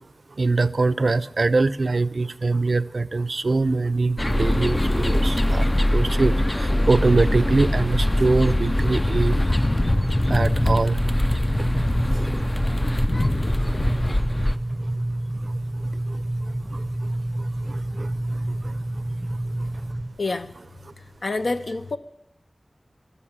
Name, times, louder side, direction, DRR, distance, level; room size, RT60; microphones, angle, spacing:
voice 1, 0.4-9.4 10.3-11.0 12.1-12.3 16.7-16.8 17.7-18.1 18.6-18.7, right 3 dB, 70° right, 0.4 m, -23 dB
sound 1, 4.2-14.6, left 1 dB, 25° left, 0.4 m, -22 dB
sound 2, 9.6-20.1, right 1 dB, 20° right, 0.8 m, -28 dB
voice 2, 20.2-20.5 21.0-22.0, left 3 dB, 80° left, 0.6 m, -27 dB
13.5 x 6.9 x 8.7 m
wide cardioid pair, 75°, 0 cm